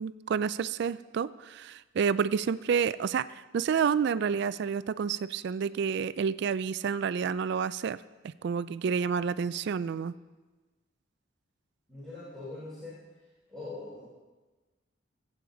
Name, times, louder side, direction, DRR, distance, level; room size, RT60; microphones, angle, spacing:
voice 1, 0.0-8.0 8.2-10.1, right 6 dB, 60° right, 16 dB, 0.3 m, -29 dB
voice 2, 11.9-13.0 13.5-14.0, left 2 dB, 5° left, -11 dB, 3.7 m, -42 dB
19.0 x 8.5 x 3.9 m, 1.2 s
head